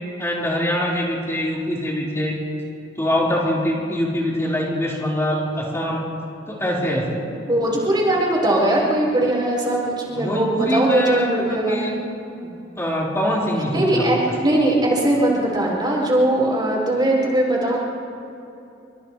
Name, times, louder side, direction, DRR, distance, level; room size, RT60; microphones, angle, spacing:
voice 1, 0.2-2.4 3.0-6.0 6.5-7.2 10.1-11.3 11.7-11.9 12.4-12.5 12.8-14.1, equal, 15° left, -6 dB, 4.9 m, -23 dB
voice 2, 7.5-11.9 13.7-17.8, right 1 dB, 25° right, -4 dB, 4.9 m, -20 dB
30.0 x 26.0 x 3.4 m, 2.9 s
head